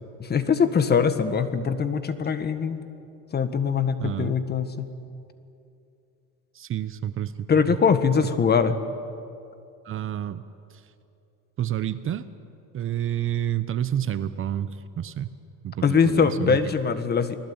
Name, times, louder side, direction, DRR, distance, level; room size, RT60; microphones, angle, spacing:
voice 1, 0.2-2.8 3.3-4.9 7.5-8.8 15.8-17.4, left 6 dB, 25° left, 11 dB, 1.5 m, -22 dB
voice 2, 4.0-4.3 6.5-7.8 9.8-10.4 10.7-10.8 11.6-12.3 12.7-15.3 15.6-16.6, right 10 dB, 35° right, 13 dB, 0.9 m, -29 dB
30.0 x 20.0 x 8.9 m, 2.6 s
supercardioid pair, 120°, 36 cm